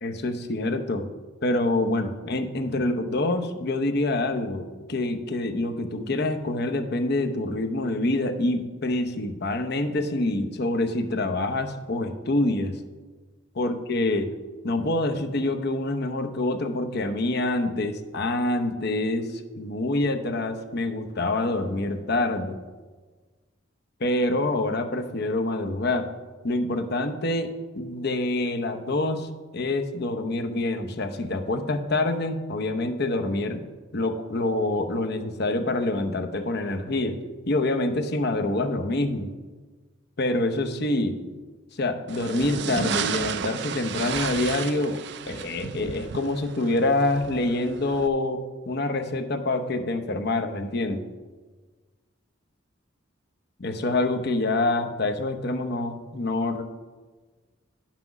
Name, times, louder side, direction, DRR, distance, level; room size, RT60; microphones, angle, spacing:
voice 1, 0.0-1.1 1.4-12.8 13.5-14.4 14.6-22.6 24.0-26.1 26.4-27.5 27.8-33.6 33.9-37.2 37.5-39.3 40.2-41.2 41.7-45.0 45.3-51.0 53.6-56.6, left 2 dB, 55° left, 6 dB, 0.8 m, -26 dB
sound 1, 42.1-48.1, right 6 dB, 60° right, 0.5 m, -33 dB
10.5 x 5.9 x 6.0 m, 1.4 s
head